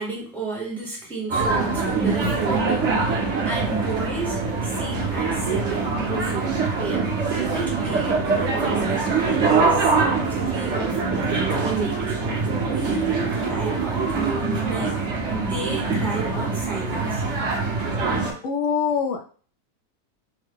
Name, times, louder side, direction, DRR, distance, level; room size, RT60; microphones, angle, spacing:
voice 1, 0.0-15.0 15.4-17.2, right 3 dB, ahead, -4 dB, 0.9 m, -33 dB
sound 1, 1.3-18.3, right 4 dB, 50° right, 1.1 m, -24 dB
voice 2, 18.4-19.3, left 6 dB, 65° left, 4 dB, 0.9 m, -24 dB
3.7 x 2.1 x 3.5 m, 0.41 s
omnidirectional pair, 1.7 m